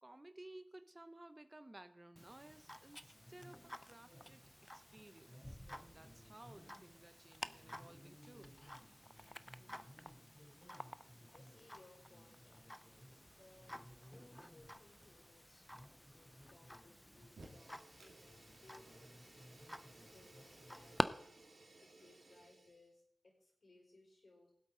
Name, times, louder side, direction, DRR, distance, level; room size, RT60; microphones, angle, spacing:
voice 1, 0.0-4.4 4.7-8.6, right 1 dB, 25° right, 10 dB, 0.8 m, -58 dB
Tick-tock, 2.2-21.0, equal, 10° left, 0.6 m, -49 dB
voice 2, 9.5-10.1 11.0-12.4 13.1-19.4 20.0-21.5 21.8-24.5, left 2 dB, 65° left, -2 dB, 5.1 m, -66 dB
Aircraft / Engine, 12.9-21.4, right 1 dB, 45° right, 3.3 m, -75 dB
Fire, 17.3-22.9, right 2 dB, 85° right, 2.5 m, -61 dB
19.0 x 8.2 x 3.9 m, 0.70 s
cardioid pair, 45°, 0 cm